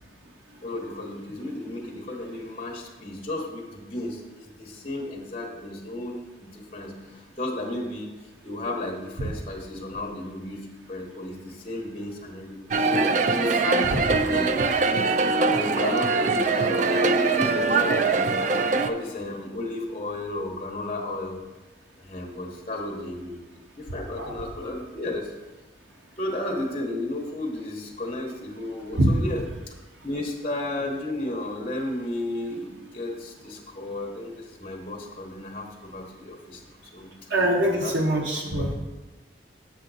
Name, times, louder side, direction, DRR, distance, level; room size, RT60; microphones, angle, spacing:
voice 1, 0.6-8.1 8.4-15.2 15.5-21.4 22.0-25.3 26.2-29.5 30.0-37.1 37.6-38.0 38.4-38.7, left 1 dB, 30° left, -1 dB, 1.1 m, -33 dB
sound 1, 12.7-18.9, right 4 dB, 40° right, 0.3 m, -22 dB
voice 2, 37.3-38.7, right 1 dB, 90° right, 0 dB, 1.0 m, -23 dB
7.2 x 6.4 x 4.1 m, 1.2 s
head